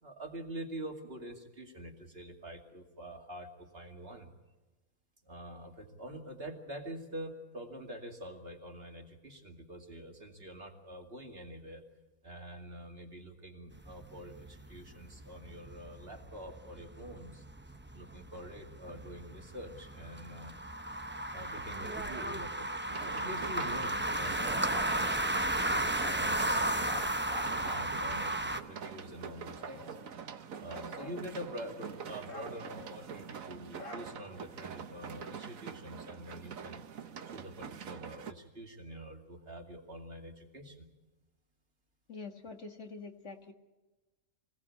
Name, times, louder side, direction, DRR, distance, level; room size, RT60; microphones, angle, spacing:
voice 1, 0.0-4.3 5.2-11.8 12.2-17.4 17.9-20.5 21.3-22.7 23.0-26.8 27.4-30.0 30.6-40.9, right 1 dB, 40° right, 3 dB, 2.7 m, -46 dB
sound 1, 13.7-28.6, right 1 dB, 10° right, 0.6 m, -34 dB
sound 2, 22.9-38.3, right 7 dB, 65° right, 1.4 m, -45 dB
Bark, 24.4-25.0 26.0-26.2 26.8-28.3 29.1-30.2 30.6-31.8 32.2-33.3 33.8-34.5, left 2 dB, 35° left, 2.1 m, -48 dB
voice 2, 42.1-43.5, left 4 dB, 50° left, 5 dB, 1.9 m, -45 dB
25.0 x 17.5 x 8.4 m, 1.2 s
omnidirectional pair, 1.6 m